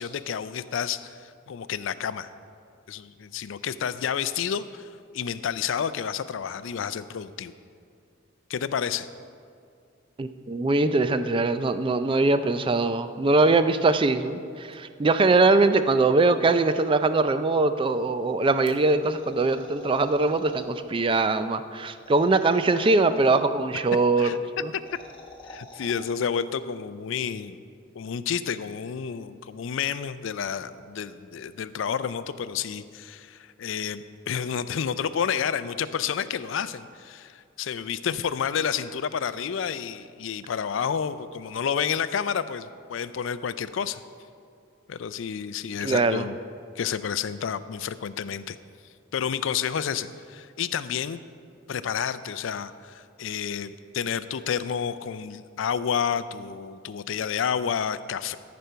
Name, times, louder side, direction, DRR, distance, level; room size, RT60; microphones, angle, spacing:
voice 1, 0.0-2.3 2.9-4.9 5.1-7.5 8.5-9.1 24.2-24.4 25.5-27.6 27.9-44.0 44.9-46.4 46.8-48.6 49.1-51.2 51.7-58.4, left 7 dB, 70° left, 14 dB, 0.4 m, -30 dB
voice 2, 10.2-24.7 45.8-46.2, right 3 dB, 25° right, 11 dB, 0.4 m, -22 dB
sound 1, 18.7-20.7 22.0-23.1 24.6-26.0, left 1 dB, 25° left, 1.1 m, -46 dB
13.5 x 5.2 x 5.6 m, 2.3 s
head